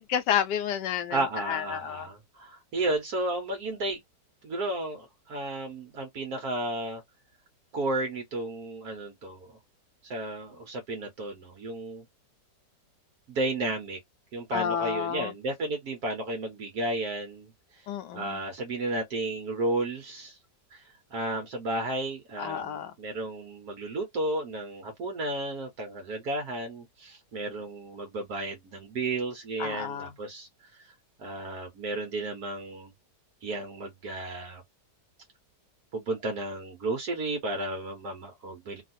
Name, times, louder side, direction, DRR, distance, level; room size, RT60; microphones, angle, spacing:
voice 1, 0.0-1.2 1.5-2.1 14.5-15.3 17.9-18.4 22.4-22.9 29.6-30.1, left 9 dB, 80° left, 1.2 m, -30 dB
voice 2, 1.1-4.0 4.4-7.0 7.7-9.6 10.0-12.0 13.3-14.0 14.3-17.9 18.1-20.4 20.7-30.9 31.2-32.9 33.4-34.6 35.9-38.8, right 2 dB, 65° right, 1.4 m, -33 dB
3.3 x 2.4 x 2.7 m
omnidirectional pair, 1.9 m